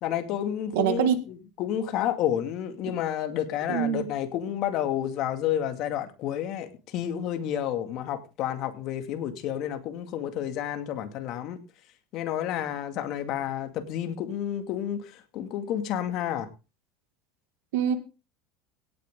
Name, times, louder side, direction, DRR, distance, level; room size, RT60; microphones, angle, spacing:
voice 1, 0.0-11.6 12.1-16.5, left 10 dB, 50° left, 7 dB, 2.2 m, -30 dB
voice 2, 0.7-1.2 3.7-4.1 17.7-17.9, right 9 dB, 90° right, 10 dB, 2.0 m, -24 dB
17.0 x 9.0 x 3.7 m, 0.31 s
cardioid pair, 150°, 0 cm